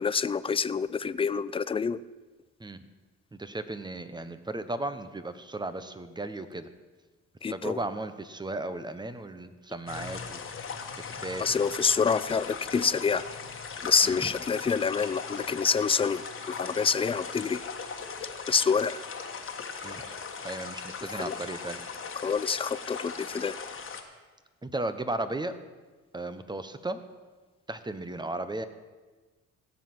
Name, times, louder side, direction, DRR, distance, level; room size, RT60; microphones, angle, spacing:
voice 1, 0.0-2.0 7.4-7.8 11.4-13.2 13.8-17.6 18.5-19.0 21.2-21.4 22.2-23.6, left 5 dB, 20° left, 17 dB, 0.4 m, -27 dB
voice 2, 3.3-6.7 7.5-10.4 11.0-11.6 14.0-14.2 19.8-20.1 20.4-21.8 24.6-25.5 26.1-27.0 27.7-28.6, right 2 dB, 15° right, 11 dB, 0.9 m, -35 dB
sound 1, 9.9-24.0, left 5 dB, 40° left, 1.5 m, -39 dB
16.5 x 7.5 x 6.0 m, 1.3 s
cardioid pair, 90°, 30 cm